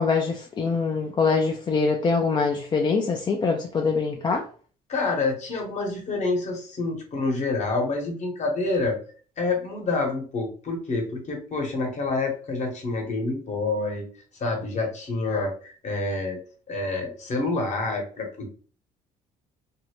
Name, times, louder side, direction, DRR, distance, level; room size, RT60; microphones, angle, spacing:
voice 1, 0.0-4.4, left 4 dB, 25° left, 2 dB, 0.3 m, -24 dB
voice 2, 4.9-9.0 9.4-14.0 14.4-16.4 16.7-18.5, left 3 dB, 45° left, 1 dB, 1.0 m, -27 dB
2.6 x 2.1 x 2.9 m, 0.42 s
cardioid pair, 110°, 17 cm